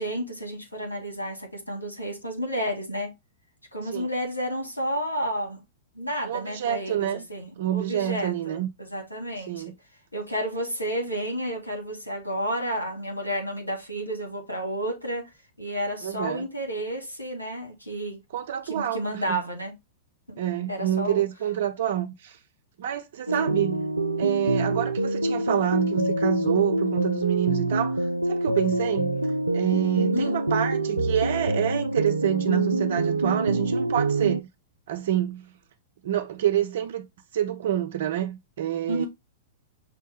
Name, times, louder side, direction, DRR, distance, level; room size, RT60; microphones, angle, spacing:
voice 1, 0.0-3.1 3.7-5.6 5.9-9.6 10.1-15.3 15.6-18.2 18.6-19.7 20.3-20.4 20.7-21.2 23.4-23.5 30.1-30.4 38.9-39.1, equal, 90° left, 1.4 m, -31 dB
voice 2, 6.3-7.2 7.6-8.7 9.5-9.7 16.0-16.4 18.3-19.0 19.3-19.4 20.4-22.4 22.8-23.9 24.2-29.2 29.5-34.5 34.9-35.5 36.0-37.1 37.3-39.1, right 11 dB, 55° right, 0.7 m, -27 dB
sound 1, 23.3-34.4, right 1 dB, 85° right, 0.3 m, -26 dB
5.9 x 2.2 x 3.4 m
figure-of-eight pair, 100°, 0 cm